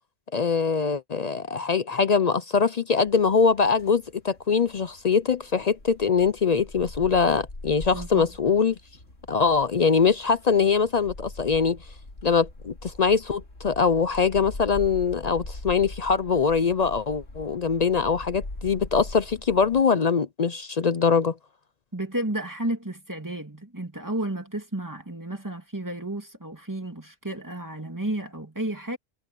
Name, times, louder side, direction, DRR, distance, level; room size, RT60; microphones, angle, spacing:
voice 1, 0.3-8.8 9.3-11.8 12.2-21.3, left 5 dB, 45° left, 0.6 m, -23 dB
sound 1, 3.1-19.8, left 2 dB, 80° left, 3.7 m, -42 dB
voice 2, 7.9-8.3 21.9-29.0, right 1 dB, 15° right, 2.7 m, -32 dB
omnidirectional pair, 1.1 m